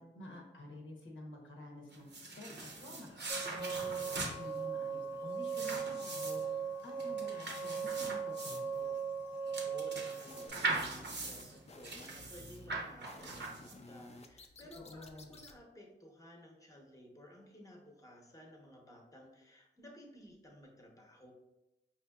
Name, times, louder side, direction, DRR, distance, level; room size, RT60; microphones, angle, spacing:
voice 1, 0.0-2.1 2.4-3.2 3.5-8.9 14.7-15.4, left 1 dB, 80° left, -1 dB, 0.8 m, -50 dB
sound 1, 1.9-14.0, right 3 dB, 65° right, 0.7 m, -41 dB
sound 2, 3.3-10.5, right 6 dB, 25° right, 0.7 m, -39 dB
voice 2, 9.5-21.3, equal, 15° left, 0 dB, 0.8 m, -55 dB
sound 3, 10.3-15.6, left 2 dB, 35° left, 0.4 m, -55 dB
5.0 x 2.7 x 2.3 m, 0.95 s
wide cardioid pair, 65°, 20 cm